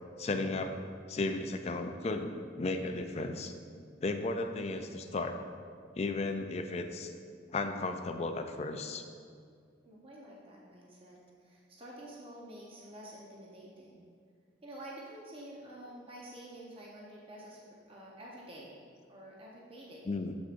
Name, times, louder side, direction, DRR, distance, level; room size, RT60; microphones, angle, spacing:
voice 1, 0.2-0.8 1.1-3.5 4.0-5.4 6.0-7.1 7.5-9.0 20.1-20.4, left 2 dB, 35° left, 6 dB, 0.3 m, -34 dB
voice 2, 9.8-14.1 14.6-17.6 17.9-18.8 19.1-20.1, right 1 dB, 30° right, -4 dB, 0.8 m, -49 dB
7.1 x 6.3 x 2.5 m, 2.1 s
head